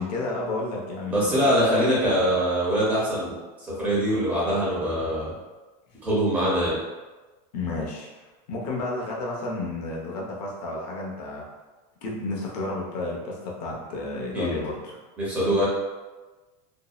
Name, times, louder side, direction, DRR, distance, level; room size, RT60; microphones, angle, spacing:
voice 1, 0.0-1.4 7.5-11.4 12.0-15.0, left 2 dB, 85° left, -2 dB, 0.7 m, -31 dB
voice 2, 1.1-5.3 6.0-6.8 14.3-14.6 15.2-15.6, equal, 5° right, -8 dB, 0.7 m, -23 dB
2.6 x 2.0 x 2.3 m, 1.2 s
supercardioid pair, 170°, 20 cm